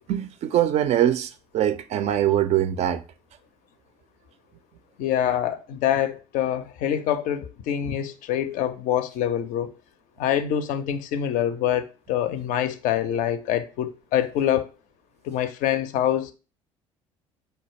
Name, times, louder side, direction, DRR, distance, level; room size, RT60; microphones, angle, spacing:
voice 1, 0.1-3.0, right 11 dB, 40° right, 0.4 m, -23 dB
voice 2, 5.0-9.7 10.2-14.7 15.2-16.3, left 10 dB, 50° left, 0.4 m, -25 dB
4.1 x 2.2 x 3.0 m
figure-of-eight pair, 55°, 17 cm